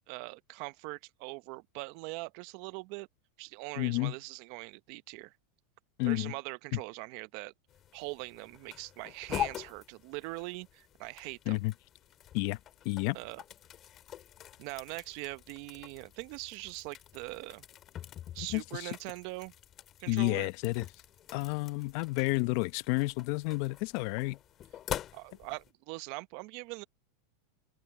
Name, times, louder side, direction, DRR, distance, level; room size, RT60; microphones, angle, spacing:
voice 1, 0.1-3.1 3.4-5.3 6.0-7.5 7.9-11.6 13.1-13.4 14.6-17.6 18.3-19.5 20.0-20.5 25.1-26.8, right 24 dB, 55° right, 0.9 m, -42 dB
voice 2, 3.8-4.1 6.0-6.3 6.7-6.8 11.5-11.7 12.3-12.6 12.8-13.2 18.5-18.9 20.1-20.9 21.3-24.4, left 23 dB, 60° left, 0.8 m, -30 dB
sound 1, 7.7-25.7, left 11 dB, 35° left, 3.2 m, -45 dB
hypercardioid pair, 120°, 0 cm